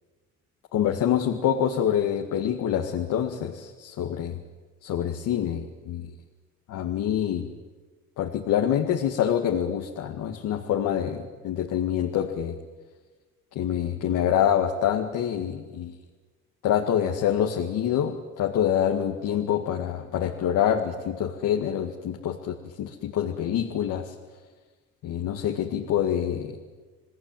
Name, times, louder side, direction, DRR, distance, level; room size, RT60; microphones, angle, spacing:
voice 1, 0.7-4.4 4.8-6.1 6.7-7.4 8.2-12.5 13.6-15.9 16.6-24.1 25.0-26.5, left 9 dB, 85° left, 2 dB, 2.1 m, -26 dB
29.5 x 19.0 x 9.2 m, 1.4 s
cardioid pair, 90°, 30 cm